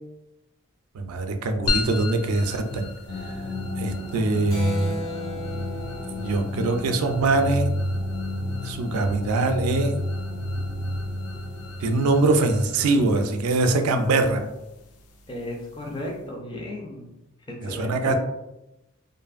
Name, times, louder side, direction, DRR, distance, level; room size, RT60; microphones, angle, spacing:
voice 1, 0.9-2.9 3.2-3.4 3.8-5.0 6.1-7.7 8.6-9.9 11.8-14.4 17.6-18.1, right 2 dB, 85° right, 6 dB, 0.4 m, -23 dB
sound 1, 1.7-16.3, left 4 dB, 85° left, 0.4 m, -38 dB
sound 2, 3.1-13.3, left 1 dB, 45° left, 1.2 m, -31 dB
Keyboard (musical), 4.5-8.6, left 2 dB, 65° left, 1.0 m, -37 dB
voice 2, 15.3-17.1 17.5-18.1, left 1 dB, 20° left, 0 dB, 0.4 m, -35 dB
2.5 x 2.5 x 2.4 m, 0.93 s
head